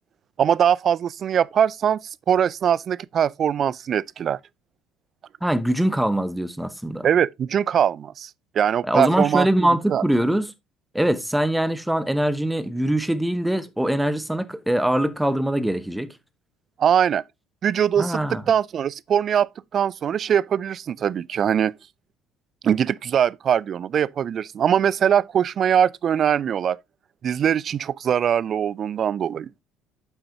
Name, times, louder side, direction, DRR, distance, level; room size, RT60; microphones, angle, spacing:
voice 1, 0.4-2.0 2.3-4.4 7.0-10.0 16.8-17.2 17.6-21.7 22.6-26.8 27.2-29.5, right 8 dB, 45° right, 0.4 m, -22 dB
voice 2, 5.4-7.1 8.8-10.5 10.9-16.1 18.0-18.4, right 1 dB, 5° right, 1.1 m, -23 dB
9.1 x 7.5 x 2.9 m
figure-of-eight pair, 55°, 0 cm